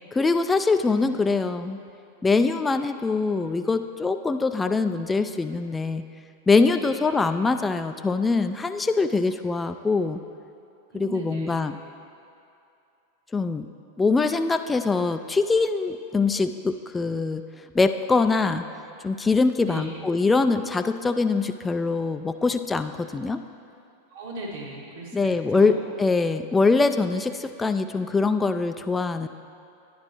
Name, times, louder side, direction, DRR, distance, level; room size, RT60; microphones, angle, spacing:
voice 1, 0.1-1.8 2.2-6.0 6.5-10.2 10.9-11.8 13.3-13.7 14.0-17.4 17.7-18.6 19.0-23.4 25.1-29.3, left 3 dB, 15° left, 8 dB, 0.3 m, -23 dB
voice 2, 10.9-11.6 19.6-19.9 24.1-25.7, right 2 dB, 65° right, -4 dB, 2.1 m, -38 dB
11.0 x 10.0 x 3.0 m, 2.6 s
hypercardioid pair, 95°, 0 cm